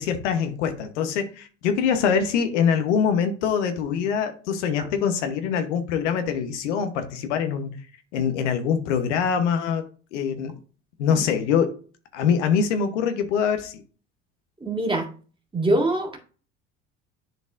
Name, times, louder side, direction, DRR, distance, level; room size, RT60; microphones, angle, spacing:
voice 1, 0.0-7.8 8.1-9.8 10.1-10.5 11.0-11.7 12.1-13.7, left 7 dB, 75° left, 1.1 m, -24 dB
voice 2, 14.6-15.1 15.5-16.2, right 1 dB, 15° right, 2.2 m, -24 dB
10.5 x 4.1 x 2.5 m
hypercardioid pair, 70°, 36 cm